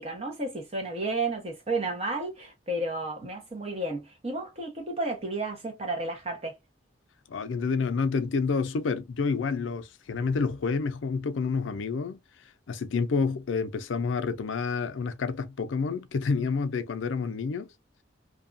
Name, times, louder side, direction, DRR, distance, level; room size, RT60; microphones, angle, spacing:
voice 1, 0.0-6.6, right 2 dB, 35° right, 1.0 m, -32 dB
voice 2, 7.3-12.2 12.7-17.7, left 4 dB, 85° left, 0.4 m, -29 dB
2.7 x 2.3 x 2.5 m
head